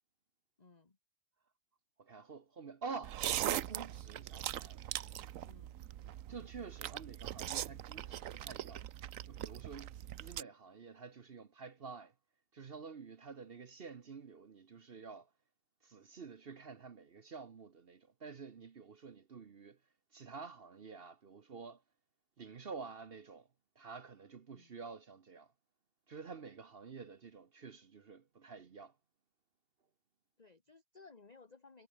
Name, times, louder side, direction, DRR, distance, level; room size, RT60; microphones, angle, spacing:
voice 1, 0.6-1.0 5.4-5.8 24.5-24.7 30.4-31.9, left 4 dB, 25° left, 1.6 m, -59 dB
voice 2, 2.0-4.8 6.3-8.8 9.3-9.9 10.2-12.1 12.5-15.3 15.8-19.8 20.1-21.8 22.4-23.5 23.8-25.5 26.1-28.9, right 5 dB, 45° right, 1.0 m, -49 dB
sound 1, 3.0-10.4, right 12 dB, 65° right, 1.0 m, -41 dB
omnidirectional pair, 1.7 m